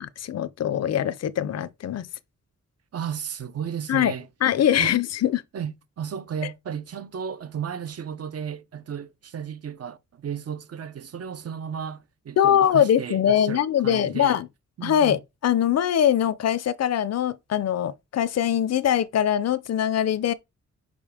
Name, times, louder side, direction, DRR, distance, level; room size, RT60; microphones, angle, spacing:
voice 1, 0.0-2.1 3.9-4.1 4.4-5.4 12.4-14.5 14.8-20.3, left 10 dB, 60° left, 0.6 m, -22 dB
voice 2, 2.9-4.3 4.8-5.0 5.5-14.4 14.8-15.2, right 8 dB, 55° right, 0.8 m, -34 dB
5.3 x 5.1 x 4.8 m
wide cardioid pair, 150°, 30 cm